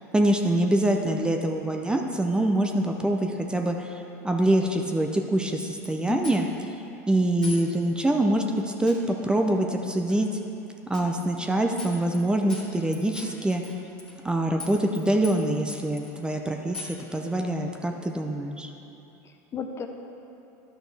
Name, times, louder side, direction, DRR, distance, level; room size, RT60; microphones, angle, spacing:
voice 1, 0.1-6.5 7.1-10.3 10.9-13.6 14.2-18.7, right 1 dB, 10° right, 3 dB, 0.5 m, -25 dB
sound 1, 5.6-5.9 6.2-6.6 7.4-7.7 8.0-8.1 8.9-9.1 10.1-10.2 10.9-11.1 11.4-11.5 11.8-12.2 12.5-14.3 14.6-15.0 15.2-16.1 16.7-17.0, left 3 dB, 10° left, 1.3 m, -40 dB
voice 2, 6.1-6.5 19.2-19.9, left 6 dB, 30° left, 5 dB, 0.7 m, -34 dB
11.0 x 6.1 x 3.4 m, 2.9 s
hypercardioid pair, 95°, 9 cm